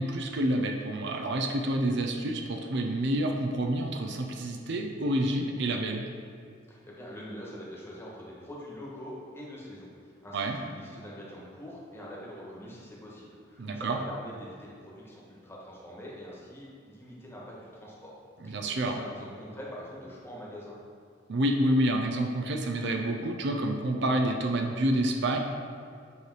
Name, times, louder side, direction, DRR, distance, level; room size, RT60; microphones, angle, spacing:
voice 1, 0.0-6.0 10.3-10.6 13.6-14.0 18.4-19.0 21.3-25.4, right 1 dB, 65° right, 3 dB, 0.6 m, -28 dB
voice 2, 6.7-18.1 18.4-20.8, equal, 15° left, -5 dB, 1.3 m, -44 dB
8.1 x 3.3 x 4.6 m, 2.2 s
head